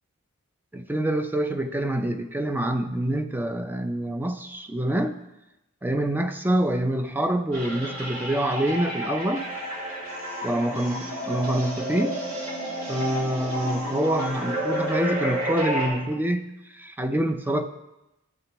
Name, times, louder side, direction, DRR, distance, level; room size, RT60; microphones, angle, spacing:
voice 1, 0.7-5.2 5.8-9.5 10.4-12.2 12.9-17.7, right 1 dB, 10° right, 7 dB, 0.4 m, -26 dB
sound 1, 7.5-15.9, equal, 65° right, 2.3 m, -30 dB
13.0 x 6.8 x 3.0 m, 0.94 s
head